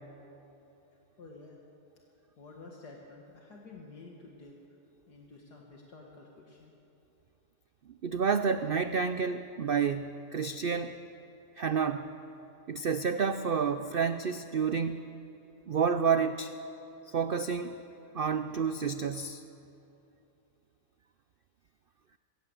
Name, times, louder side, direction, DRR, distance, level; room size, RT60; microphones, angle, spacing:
voice 1, 1.2-1.6 2.4-4.6 5.1-6.7, left 3 dB, 75° left, -1 dB, 2.4 m, -50 dB
voice 2, 8.0-11.0 11.6-12.1 12.7-15.0 15.7-16.5 17.1-17.8 18.1-19.4, right 6 dB, 75° right, 10 dB, 0.5 m, -29 dB
21.0 x 17.5 x 8.0 m, 2.9 s
omnidirectional pair, 1.7 m